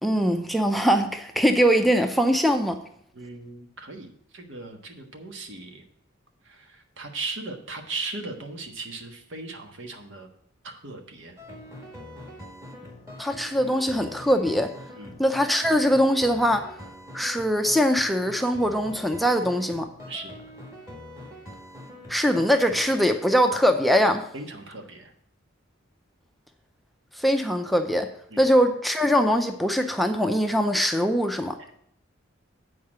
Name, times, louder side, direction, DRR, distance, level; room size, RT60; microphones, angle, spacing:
voice 1, 0.0-2.8 13.2-14.7 15.2-16.7 17.1-19.9 22.1-24.2 27.2-28.1 28.4-31.6, equal, ahead, 5 dB, 0.5 m, -22 dB
voice 2, 3.1-5.8 6.4-10.3 10.6-11.4 15.0-15.2 20.1-20.3 24.3-25.1 28.3-28.5 31.6-31.7, right 3 dB, 70° right, 4 dB, 1.4 m, -38 dB
sound 1, 11.4-23.0, left 1 dB, 15° right, 1.6 m, -43 dB
8.4 x 4.7 x 7.3 m, 0.68 s
head